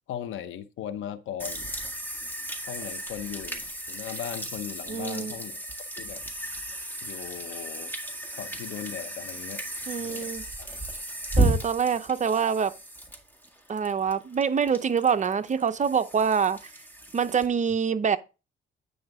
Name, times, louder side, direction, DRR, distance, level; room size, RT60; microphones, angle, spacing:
voice 1, 0.1-1.7 2.7-5.6 6.0-6.3 7.0-7.9 8.4-9.6 10.0-10.3, left 10 dB, 80° left, 0.8 m, -38 dB
sound 1, 1.4-17.5, right 1 dB, 10° left, 1.9 m, -33 dB
voice 2, 4.9-5.3 9.9-10.4 11.4-12.7 13.7-16.6 17.1-18.2, right 6 dB, 35° right, 0.7 m, -25 dB
9.5 x 5.0 x 3.5 m
cardioid pair, 90°, 20 cm